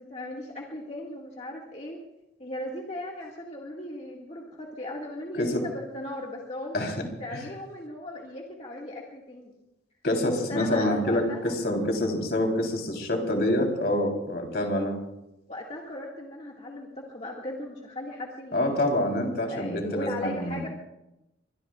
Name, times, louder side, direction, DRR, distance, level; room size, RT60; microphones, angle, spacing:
voice 1, 0.0-2.0 2.4-6.8 7.2-9.5 10.5-11.6 15.5-18.8 19.4-20.7, left 1 dB, 35° left, -3 dB, 2.1 m, -37 dB
voice 2, 10.0-14.9 18.5-20.6, left 1 dB, 60° left, 2 dB, 3.7 m, -26 dB
24.5 x 23.0 x 2.5 m, 0.91 s
head